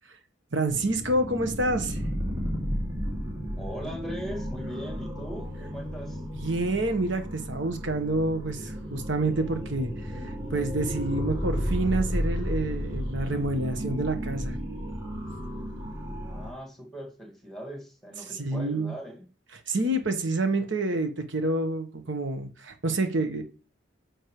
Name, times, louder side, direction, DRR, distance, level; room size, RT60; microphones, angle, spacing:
voice 1, 0.5-2.0 6.4-14.6 18.3-18.9 19.7-23.4, right 2 dB, 60° right, 6 dB, 1.3 m, -28 dB
sound 1, 0.7-16.5, equal, 20° right, 3.3 m, -33 dB
voice 2, 3.6-6.2 16.2-19.3, equal, ahead, 1 dB, 2.1 m, -39 dB
9.5 x 6.5 x 3.2 m, 0.35 s
head